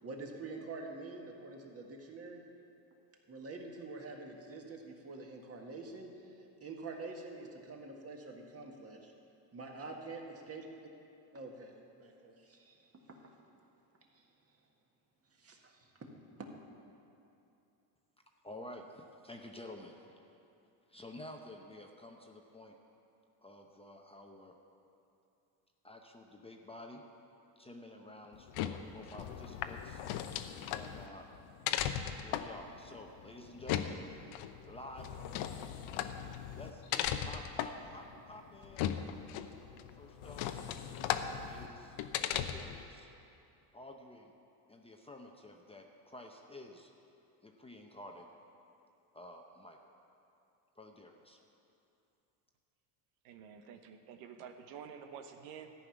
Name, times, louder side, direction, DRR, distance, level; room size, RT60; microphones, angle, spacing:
voice 1, 0.0-2.4 3.3-6.1 6.6-9.1 9.5-10.6 11.3-13.2 14.1-14.3 15.4-16.1 16.4-16.5, right 3 dB, 30° right, 1 dB, 1.7 m, -46 dB
voice 2, 18.4-20.1 20.9-22.8 23.4-24.5 25.8-27.0 27.6-30.0 30.7-31.3 32.2-34.0 34.7-36.0 36.5-39.2 40.0-40.4 40.8-42.0 42.3-43.1 43.7-44.3 44.7-46.9 47.4-48.3 49.1-49.8 50.8-51.4, left 1 dB, 10° left, 2 dB, 0.7 m, -51 dB
sound 1, 28.3-42.8, left 10 dB, 65° left, 0.8 m, -38 dB
voice 3, 53.2-55.7, right 7 dB, 85° right, 6 dB, 1.1 m, -49 dB
14.0 x 5.7 x 9.2 m, 2.7 s
supercardioid pair, 115°, 50 cm